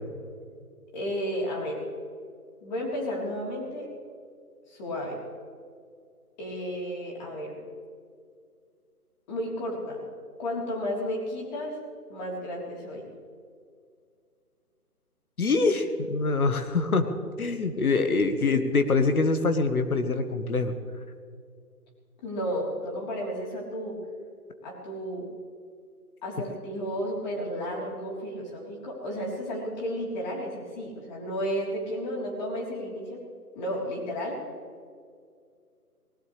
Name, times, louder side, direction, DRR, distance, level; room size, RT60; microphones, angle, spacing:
voice 1, 0.9-1.8 2.6-3.9 4.7-5.2 6.4-7.5 9.3-10.1 10.4-11.8 12.1-13.1 22.2-24.0 24.6-25.3 26.2-33.2 33.6-34.4, equal, 30° left, -2 dB, 3.8 m, -32 dB
voice 2, 15.4-17.1 17.4-20.7, left 3 dB, 65° left, 8 dB, 1.5 m, -24 dB
19.5 x 19.0 x 3.3 m, 2.2 s
figure-of-eight pair, 150°, 46 cm